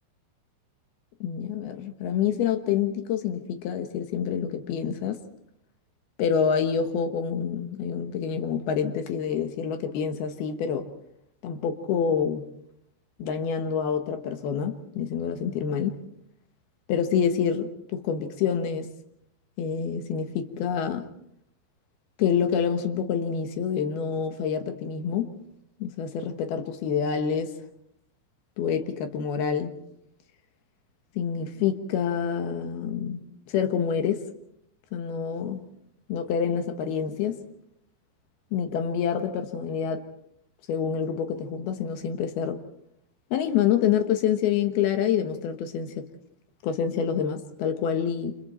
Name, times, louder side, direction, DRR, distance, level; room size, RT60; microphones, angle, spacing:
voice 1, 1.2-5.2 6.2-10.9 11.4-12.5 13.2-16.0 16.9-18.9 19.6-21.1 22.2-25.3 25.8-27.5 28.6-29.7 31.2-33.2 33.5-34.3 34.9-35.6 36.1-37.4 38.5-40.1 40.7-42.6 43.3-46.1 46.6-48.4, left 7 dB, 65° left, 7 dB, 2.7 m, -27 dB
29.5 x 26.5 x 4.3 m, 0.73 s
omnidirectional pair, 5.7 m